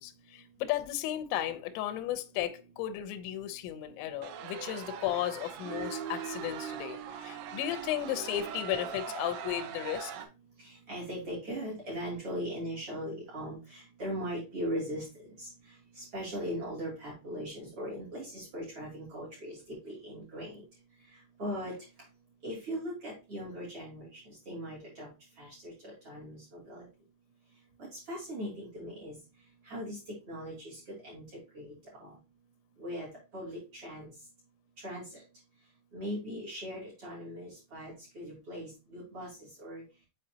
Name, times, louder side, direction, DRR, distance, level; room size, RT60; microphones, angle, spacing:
voice 1, 0.0-10.1, left 12 dB, 85° left, 2.6 m, -34 dB
sound 1, 4.2-10.3, right 8 dB, 85° right, 3.5 m, -40 dB
voice 2, 10.6-15.0 15.4-15.5 16.0-20.6 21.4-21.7 22.4-25.1 25.4-26.8 27.9-29.1 29.7-30.0 30.3-31.3 31.5-31.7 32.0-32.1 32.8-34.1 34.8-35.0 35.9-39.3 39.6-39.8, equal, 35° right, 2.8 m, -39 dB
7.6 x 4.8 x 2.8 m
omnidirectional pair, 6.0 m